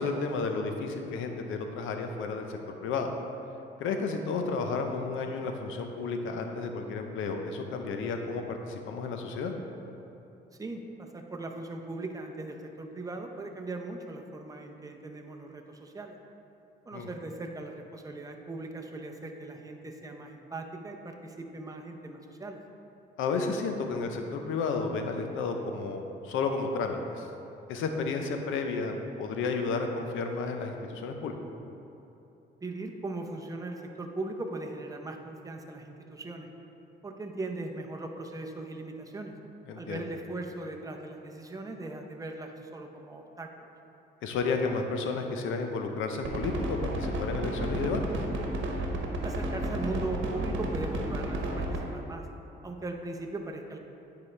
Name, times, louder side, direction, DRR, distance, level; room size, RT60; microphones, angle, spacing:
voice 1, 0.0-3.1 3.8-9.5 16.9-17.1 23.2-27.3 27.7-31.4 39.7-40.0 44.2-48.2, left 4 dB, 85° left, 5 dB, 0.7 m, -32 dB
voice 2, 10.6-16.2 16.9-22.6 32.6-36.5 37.0-39.3 39.8-43.7 49.2-52.3 52.6-53.8, right 2 dB, 15° right, 3 dB, 0.7 m, -39 dB
sound 1, 46.2-51.8, right 1 dB, 75° right, 1.0 m, -32 dB
9.2 x 4.9 x 3.3 m, 3.0 s
cardioid pair, 90°, 20 cm